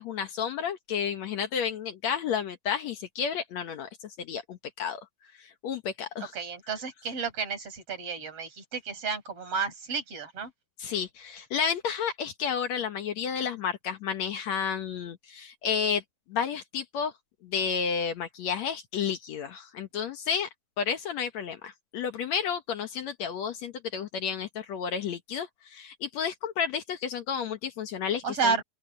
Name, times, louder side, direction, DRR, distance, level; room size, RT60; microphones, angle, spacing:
voice 1, 0.0-5.1 5.4-6.3 10.8-16.0 16.3-17.1 17.4-20.5 20.8-28.6, left 7 dB, 60° left, 2.0 m, -31 dB
voice 2, 6.3-10.5 28.2-28.6, right 5 dB, 40° right, 6.8 m, -31 dB
open air
omnidirectional pair, 4.2 m